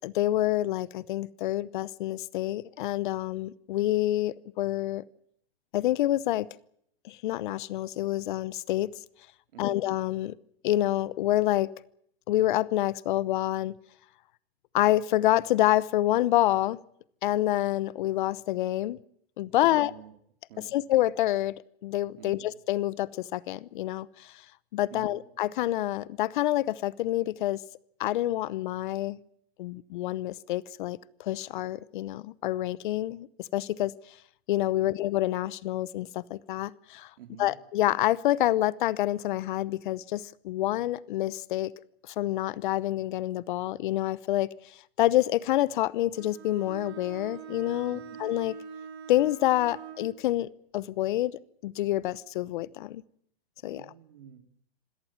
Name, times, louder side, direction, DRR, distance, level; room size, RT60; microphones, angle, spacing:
voice 1, 0.0-5.0 5.7-6.5 7.0-8.9 9.6-10.4 10.6-11.7 12.3-13.8 14.7-16.8 17.2-19.0 19.4-19.9 20.6-21.6 21.8-24.3 24.7-27.6 28.0-29.2 29.6-33.9 34.5-37.1 37.4-41.7 42.1-48.6 49.1-53.0 53.6-53.9, left 15 dB, 50° left, 20 dB, 0.9 m, -27 dB
voice 2, 19.6-20.1 20.5-20.7 22.2-22.5 24.9-25.1 34.8-34.9 37.2-37.5 47.9-48.0 53.6-54.4, right 10 dB, 60° right, 8 dB, 3.1 m, -48 dB
Bowed string instrument, 46.1-50.1, right 7 dB, 40° right, 6.2 m, -43 dB
26.0 x 17.5 x 7.4 m, 0.68 s
hypercardioid pair, 140°, 31 cm